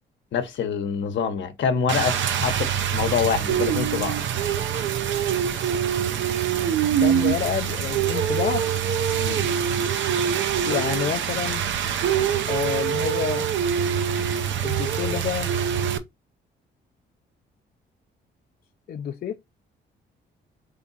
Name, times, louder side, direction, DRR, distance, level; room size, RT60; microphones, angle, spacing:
voice 1, 0.3-4.2 9.2-9.5, left 7 dB, 65° left, 0.9 m, -26 dB
Rain, 1.9-16.0, right 9 dB, 70° right, 0.7 m, -24 dB
voice 2, 7.0-8.7 10.7-11.6 12.5-13.5 14.6-15.5 18.9-19.4, left 9 dB, 50° left, 0.5 m, -28 dB
3.5 x 3.5 x 4.0 m
cardioid pair, 90°, 20 cm